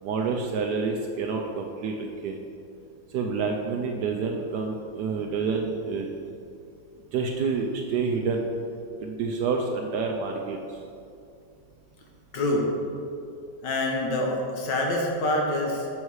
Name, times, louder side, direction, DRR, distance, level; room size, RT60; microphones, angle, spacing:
voice 1, 0.0-2.4 3.1-6.3 7.1-8.4 9.0-10.6, right 4 dB, 70° right, 2 dB, 1.0 m, -28 dB
voice 2, 12.3-12.7 13.6-16.0, left 1 dB, 65° left, 0 dB, 1.7 m, -26 dB
7.2 x 6.4 x 4.7 m, 2.5 s
omnidirectional pair, 2.2 m